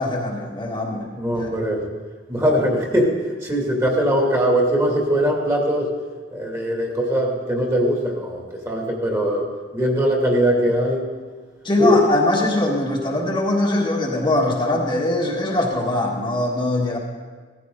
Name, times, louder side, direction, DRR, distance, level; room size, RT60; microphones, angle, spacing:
voice 1, 0.0-1.1 1.4-1.5 11.6-17.0, left 1 dB, 25° left, -2 dB, 1.8 m, -22 dB
voice 2, 1.2-1.9 2.3-3.1 3.4-5.9 6.3-11.0 11.8-12.0, equal, 15° right, -1 dB, 2.4 m, -21 dB
17.0 x 15.0 x 3.9 m, 1.4 s
head